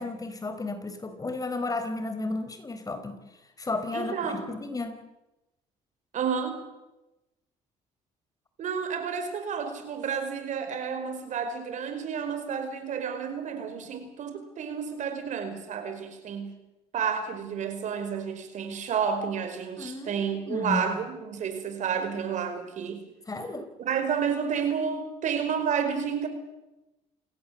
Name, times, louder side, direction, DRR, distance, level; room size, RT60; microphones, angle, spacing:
voice 1, 0.0-3.2 3.6-5.0 19.8-20.1 20.5-20.8 23.3-23.7, left 2 dB, 25° left, 9 dB, 4.5 m, -33 dB
voice 2, 3.9-4.5 6.1-6.7 8.6-16.6 16.9-23.0 23.8-26.3, right 7 dB, 60° right, 8 dB, 4.9 m, -30 dB
28.5 x 17.5 x 7.6 m, 0.98 s
supercardioid pair, 80°, 14 cm